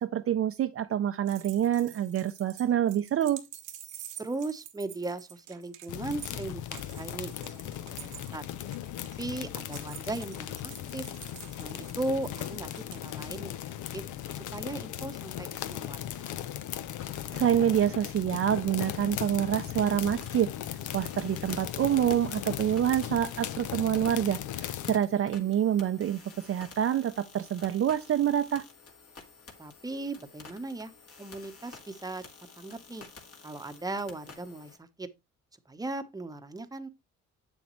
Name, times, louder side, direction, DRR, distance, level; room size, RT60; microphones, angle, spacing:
voice 1, 0.0-3.4 17.3-20.5 20.9-28.6, right 10 dB, 50° right, 0.5 m, -27 dB
sound 1, 1.3-13.0, right 11 dB, 85° right, 1.1 m, -48 dB
voice 2, 4.2-7.3 7.6-7.8 8.0-8.5 9.2-11.1 11.6-13.5 13.9-14.0 14.5-16.2 25.4-25.5 29.6-30.9 31.2-32.2 32.6-33.0 33.4-35.1 35.7-36.9, right 2 dB, 10° right, 0.9 m, -37 dB
sound 2, 5.9-25.0, left 11 dB, 80° left, 0.7 m, -37 dB
sound 3, 20.2-34.8, left 4 dB, 50° left, 2.0 m, -51 dB
7.9 x 7.2 x 3.1 m
cardioid pair, 90°, 30 cm